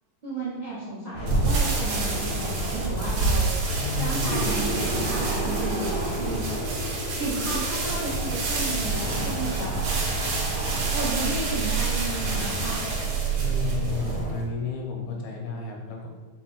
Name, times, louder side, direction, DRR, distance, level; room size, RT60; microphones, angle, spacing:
voice 1, 0.2-3.5 4.0-6.7 7.1-9.7 10.9-12.8, right 2 dB, 85° right, -9 dB, 0.4 m, -33 dB
Howling wind through window in tower, 1.1-14.3, right 1 dB, 50° left, 0.9 m, -30 dB
sound 1, 1.2-14.4, right 5 dB, 65° right, 1.5 m, -29 dB
voice 2, 3.7-4.5 13.4-16.1, left 4 dB, 80° left, 0 dB, 2.0 m, -32 dB
sound 2, 4.2-9.1, equal, 40° right, 0.6 m, -34 dB
5.8 x 2.2 x 3.9 m, 1.2 s
omnidirectional pair, 3.4 m